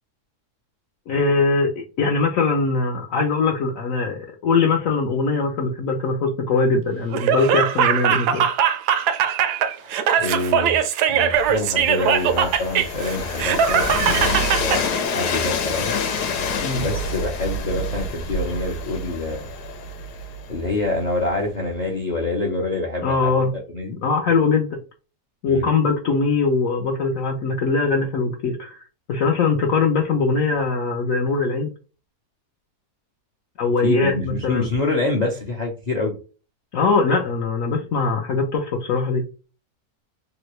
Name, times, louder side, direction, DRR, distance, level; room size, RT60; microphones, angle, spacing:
voice 1, 1.1-8.5 16.6-16.8 23.0-23.5 24.0-24.8 25.4-28.8 29.1-31.7 33.6-34.7 36.7-39.2, left 4 dB, 65° left, 1 dB, 0.9 m, -21 dB
Laughter, 7.1-14.8, right 8 dB, 85° right, 1.1 m, -20 dB
voice 2, 9.8-10.8 11.1-16.0 16.7-19.5 20.5-23.3 23.7-24.0 25.5-25.6 33.8-36.2, left 2 dB, 40° left, 1 dB, 0.6 m, -26 dB
Train, 11.3-21.2, left 3 dB, 80° left, 1.3 m, -27 dB
3.7 x 2.1 x 3.0 m, 0.34 s
omnidirectional pair, 1.7 m